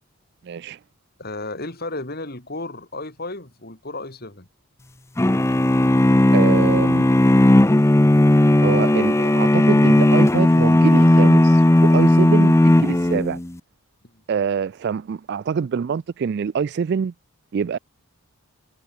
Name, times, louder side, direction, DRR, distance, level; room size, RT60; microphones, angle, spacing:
voice 1, 0.4-0.8 6.3-7.1 8.6-13.4 14.3-17.1 17.5-17.8, right 6 dB, 50° right, 0.3 m, -25 dB
voice 2, 1.2-4.5 14.0-14.2, left 2 dB, 45° left, 3.1 m, -33 dB
sound 1, 5.2-13.5, left 1 dB, 10° left, 0.5 m, -15 dB
head